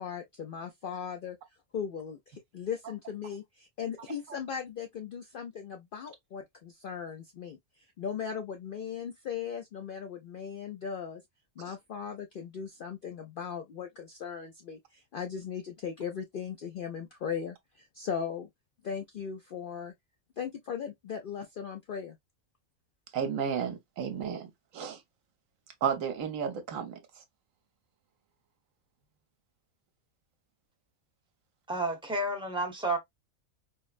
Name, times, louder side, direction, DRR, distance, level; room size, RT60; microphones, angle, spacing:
voice 1, 0.0-1.4 1.7-7.6 8.0-11.2 11.6-18.5 18.8-19.9 20.4-22.2, left 7 dB, 90° left, 0.4 m, -38 dB
voice 2, 23.1-24.5 24.7-25.0 25.8-26.9, right 7 dB, 70° right, 1.1 m, -32 dB
voice 3, 31.7-33.0, right 2 dB, 5° right, 0.7 m, -30 dB
4.3 x 2.0 x 2.4 m
omnidirectional pair, 1.5 m